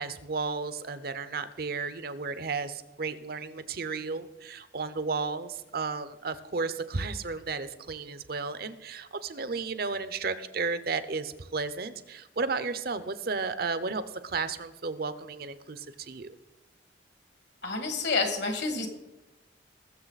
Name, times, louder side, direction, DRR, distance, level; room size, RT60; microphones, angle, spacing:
voice 1, 0.0-16.3, right 4 dB, 55° right, 12 dB, 0.7 m, -33 dB
voice 2, 17.6-18.9, left 3 dB, 65° left, 5 dB, 2.1 m, -29 dB
20.0 x 7.2 x 4.1 m, 0.95 s
head